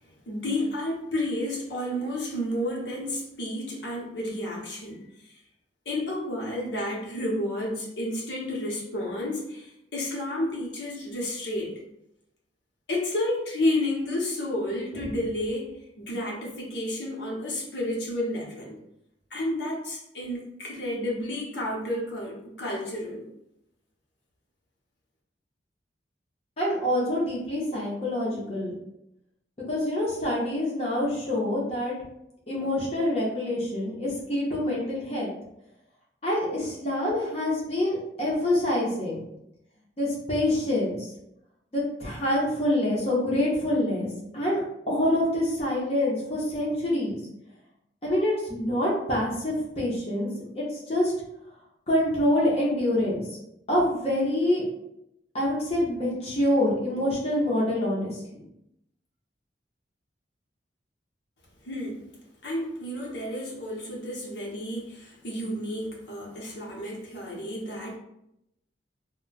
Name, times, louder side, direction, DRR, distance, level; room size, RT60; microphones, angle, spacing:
voice 1, 0.3-5.4 5.8-11.8 12.9-18.8 19.3-23.3 61.6-62.0 62.4-68.0, left 1 dB, 75° left, -3 dB, 0.8 m, -31 dB
voice 2, 26.6-28.7 29.7-31.9 32.5-35.3 36.2-39.2 40.0-41.0 41.7-44.1 44.3-44.6 44.9-47.2 48.0-50.3 50.5-51.1 51.9-53.2 53.7-54.6 55.3-58.4, left 1 dB, 35° left, -5 dB, 0.7 m, -26 dB
2.2 x 2.1 x 3.8 m, 0.81 s
head